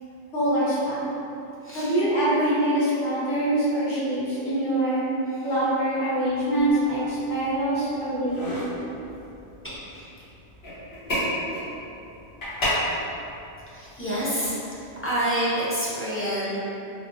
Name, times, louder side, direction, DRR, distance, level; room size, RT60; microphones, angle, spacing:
voice 1, 0.3-1.0 1.7-5.0 5.4-8.5, right 1 dB, 80° left, -10 dB, 1.4 m, -24 dB
voice 2, 1.6-1.9 5.3-5.5 9.6-10.2 13.7-16.6, equal, 15° left, -10 dB, 0.5 m, -29 dB
sound 1, 6.2-15.1, equal, 60° left, 1.5 m, -33 dB
3.2 x 3.1 x 2.6 m, 2.9 s
omnidirectional pair, 1.2 m